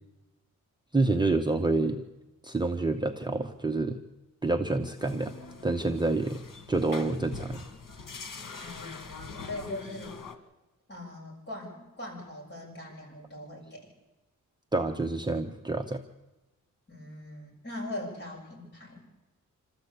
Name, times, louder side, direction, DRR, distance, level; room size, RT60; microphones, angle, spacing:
voice 1, 0.9-2.0 2.4-4.0 4.4-5.3 5.6-6.4 6.7-7.6 14.7-16.0, right 2 dB, 15° right, 3 dB, 0.8 m, -27 dB
sound 1, 5.0-10.4, left 4 dB, 90° left, 2.0 m, -43 dB
voice 2, 8.6-10.2 10.9-13.9 16.9-19.0, left 1 dB, 35° left, -2 dB, 7.4 m, -41 dB
26.5 x 13.5 x 8.3 m, 1.1 s
wide cardioid pair, 165°, 32 cm